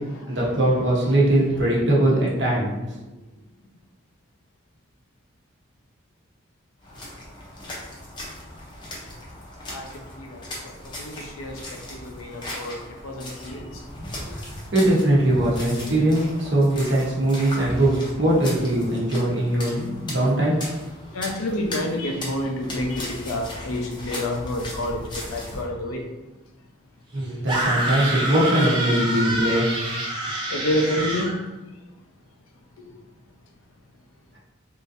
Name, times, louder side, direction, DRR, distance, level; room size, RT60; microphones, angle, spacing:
voice 1, 0.3-3.0 14.3-20.6 27.1-29.7, right 1 dB, 55° right, -5 dB, 0.9 m, -21 dB
sound 1, 6.8-25.7, left 1 dB, 20° left, 0.6 m, -38 dB
voice 2, 9.7-10.4 10.8-13.8 21.1-26.0 30.5-31.3, left 1 dB, 90° left, 2 dB, 0.6 m, -29 dB
sound 2, 27.5-31.3, right 1 dB, 20° right, 0.5 m, -26 dB
3.7 x 2.6 x 2.5 m, 1.0 s
head